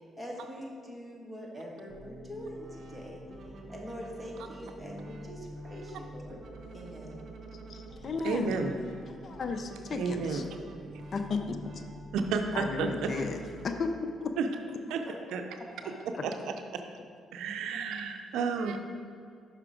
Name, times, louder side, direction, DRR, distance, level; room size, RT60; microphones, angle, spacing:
voice 1, 0.0-3.2 3.4-6.4 6.7-7.2 15.1-15.2 15.8-15.9 18.4-18.6, equal, 5° right, -3 dB, 1.5 m, -44 dB
sound 1, 1.9-13.9, right 1 dB, 60° right, 0.9 m, -46 dB
voice 2, 7.5-8.6 9.1-10.4 11.1-11.8 12.5-14.3 16.2-16.3, left 4 dB, 50° left, 7 dB, 0.5 m, -35 dB
voice 3, 8.2-8.7 9.9-10.4 12.1-13.2 14.4-14.5 14.9-15.4 16.2-16.8 17.3-18.8, right 5 dB, 85° right, 6 dB, 0.5 m, -32 dB
5.9 x 5.6 x 4.9 m, 2.3 s
cardioid pair, 90°, 0 cm